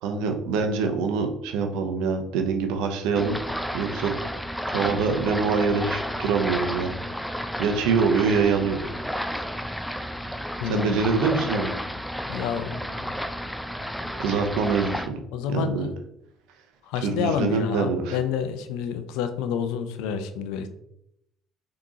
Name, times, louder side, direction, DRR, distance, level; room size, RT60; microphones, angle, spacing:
voice 1, 0.0-3.4 3.7-4.1 4.7-6.9 7.6-8.8 10.6-11.7 14.2-15.2 15.5-15.9 16.9-18.2, right 5 dB, 85° right, 5 dB, 0.6 m, -24 dB
sound 1, 3.2-15.1, equal, ahead, 0.3 m, -32 dB
voice 2, 10.6-11.0 12.3-13.1 14.0-14.2 15.3-15.9 16.9-20.7, left 7 dB, 85° left, 9 dB, 0.4 m, -29 dB
3.6 x 2.9 x 3.7 m, 0.77 s
supercardioid pair, 80°, 0 cm